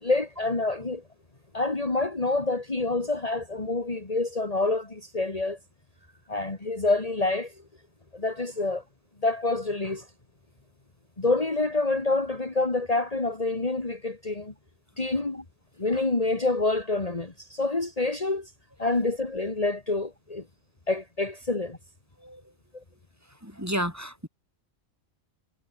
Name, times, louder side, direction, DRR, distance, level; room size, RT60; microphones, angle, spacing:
voice 1, 0.0-1.0 1.5-5.6 6.3-7.5 8.1-8.8 9.2-10.1 11.2-14.5 15.0-15.4 15.8-18.5 18.8-20.4 20.9-21.8, left 2 dB, 35° left, 2.2 m, -27 dB
voice 2, 23.4-24.3, equal, 15° right, 7.3 m, -31 dB
omnidirectional pair, 1.2 m